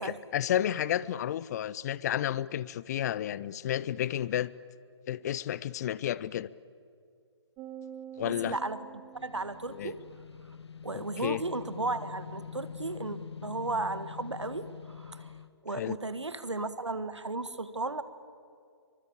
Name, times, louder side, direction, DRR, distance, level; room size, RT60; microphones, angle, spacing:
voice 1, 0.0-4.5 5.1-6.5 8.2-8.6 9.7-9.9 10.9-11.4 15.7-16.0, left 11 dB, 35° left, 20 dB, 0.7 m, -31 dB
sound 1, 7.6-10.1, right 10 dB, 20° right, 1.5 m, -47 dB
voice 2, 8.2-10.0 10.8-15.3 15.6-18.0, right 3 dB, 85° right, 13 dB, 1.6 m, -35 dB
sound 2, 9.1-15.5, left 6 dB, 70° left, 1.2 m, -45 dB
24.5 x 24.0 x 8.6 m, 2.3 s
figure-of-eight pair, 135°, 14 cm